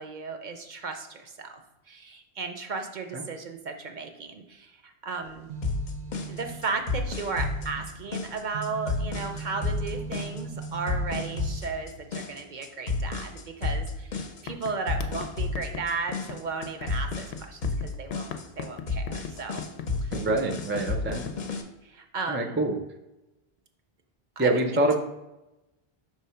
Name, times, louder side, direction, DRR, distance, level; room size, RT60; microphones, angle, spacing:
voice 1, 0.0-1.6 1.9-5.5 6.3-14.1 14.4-19.6 20.0-20.2 21.8-22.6 24.4-24.6, right 4 dB, 55° right, 6 dB, 0.6 m, -35 dB
sound 1, 5.2-12.1, right 4 dB, 85° right, 0.9 m, -40 dB
sound 2, 5.6-21.6, left 3 dB, 50° left, 0.8 m, -32 dB
sound 3, 13.7-13.9 14.2-21.4, left 7 dB, 80° left, 0.9 m, -39 dB
voice 2, 20.1-21.2 22.3-22.8 24.4-25.0, right 2 dB, 20° right, 5 dB, 0.3 m, -25 dB
5.5 x 3.2 x 5.6 m, 0.97 s
omnidirectional pair, 1.1 m